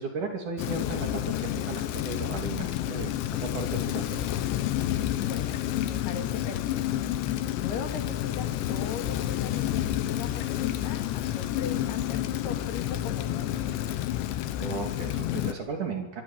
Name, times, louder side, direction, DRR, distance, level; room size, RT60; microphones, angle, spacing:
voice 1, 0.0-4.2 14.6-16.2, right 4 dB, 50° right, 3 dB, 3.9 m, -35 dB
Rain, 0.6-15.5, left 12 dB, 90° left, 3.5 m, -30 dB
voice 2, 5.2-6.9 7.6-13.9, left 7 dB, 65° left, 5 dB, 4.2 m, -38 dB
28.0 x 24.0 x 7.4 m, 0.99 s
omnidirectional pair, 5.1 m